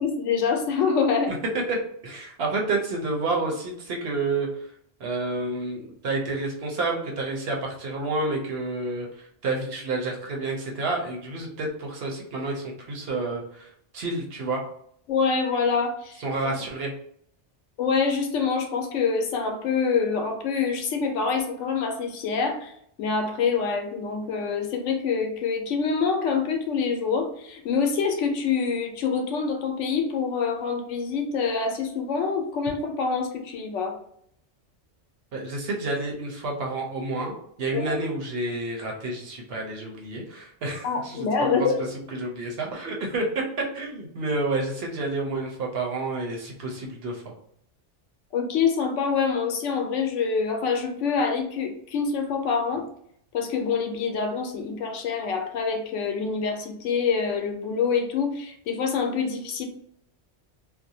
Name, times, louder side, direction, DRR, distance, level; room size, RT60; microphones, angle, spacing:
voice 1, 0.0-1.3 15.1-16.6 17.8-22.7 23.0-34.0 37.7-37.9 40.8-41.8 48.3-52.9 53.3-59.7, left 5 dB, 85° left, 4 dB, 0.9 m, -26 dB
voice 2, 2.0-4.7 5.0-14.6 16.2-16.9 35.3-41.7 42.1-43.4 43.7-47.3, right 2 dB, 60° right, -1 dB, 0.9 m, -29 dB
2.5 x 2.1 x 2.7 m, 0.68 s
omnidirectional pair, 1.2 m